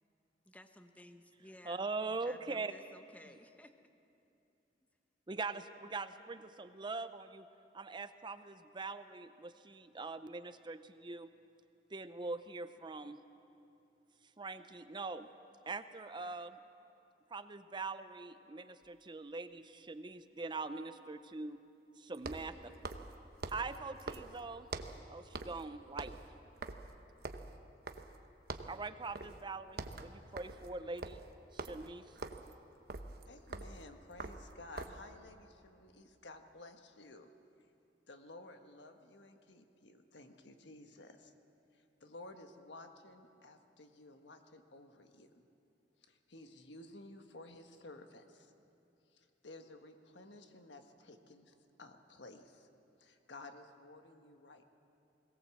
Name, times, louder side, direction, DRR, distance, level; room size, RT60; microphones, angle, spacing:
voice 1, 0.4-1.8 2.2-3.8, left 1 dB, 10° left, 7 dB, 0.9 m, -57 dB
voice 2, 1.7-2.7 5.3-7.5 7.7-11.3 11.9-13.2 14.4-15.3 15.7-16.6 17.3-21.6 22.0-22.7 23.5-24.7 25.1-26.2 28.7-31.2 31.5-32.0, right 3 dB, 25° right, 11 dB, 0.6 m, -42 dB
sound 1, 18.8-18.9 22.1-25.1 25.3-25.7 25.9-28.2 28.5-28.8 29.2-29.4 29.7-35.1, right 3 dB, 60° right, 1.0 m, -45 dB
voice 3, 33.3-37.3 38.1-41.3 41.7-45.4 46.0-48.5 49.1-52.7 53.0-54.6, left 2 dB, 85° left, 6 dB, 1.5 m, -54 dB
21.5 x 18.0 x 7.7 m, 2.7 s
head